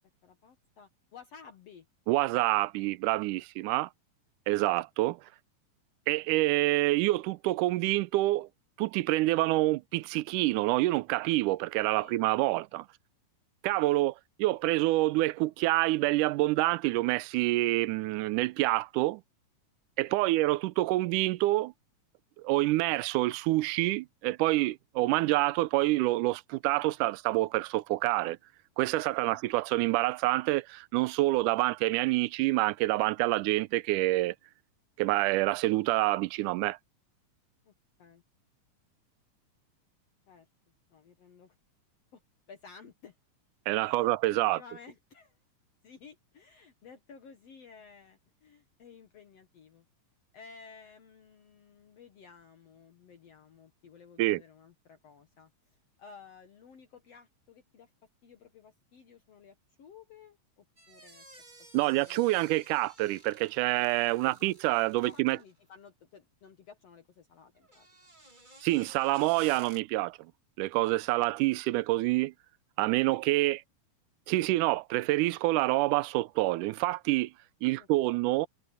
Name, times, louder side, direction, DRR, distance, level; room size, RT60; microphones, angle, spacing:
voice 1, 0.2-1.9 12.0-12.2 20.2-20.4 29.2-29.4 37.6-37.7 38.0-38.2 40.3-40.5 40.9-41.6 42.1-42.2 42.5-43.1 43.8-45.4 45.8-49.9 50.3-57.9 58.2-61.2 61.8-62.4 64.2-64.5 65.0-67.9 77.8-78.2, left 6 dB, 55° left, 2.2 m, -54 dB
voice 2, 2.1-3.9 4.5-5.2 6.1-8.5 8.8-12.9 13.6-14.1 14.4-19.2 20.0-21.7 22.4-28.4 28.8-34.4 35.0-36.8 43.7-44.6 54.2-54.4 61.7-65.4 68.6-70.2 70.6-72.3 72.8-73.6 74.3-77.3 77.6-78.5, right 18 dB, 80° right, 2.1 m, -27 dB
sound 1, 60.8-65.6 67.5-69.8, right 2 dB, 15° right, 2.4 m, -55 dB
omnidirectional pair, 3.8 m